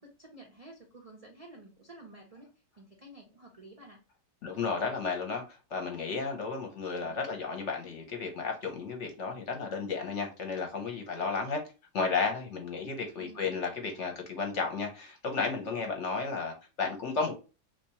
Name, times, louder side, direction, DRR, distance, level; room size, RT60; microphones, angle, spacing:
voice 1, 0.0-2.5 2.8-4.0 6.9-7.3 13.2-13.5, right 2 dB, 70° right, 0.3 m, -51 dB
voice 2, 4.4-11.6 11.9-17.4, left 4 dB, 55° left, 0.9 m, -33 dB
3.4 x 2.8 x 2.7 m
omnidirectional pair, 1.8 m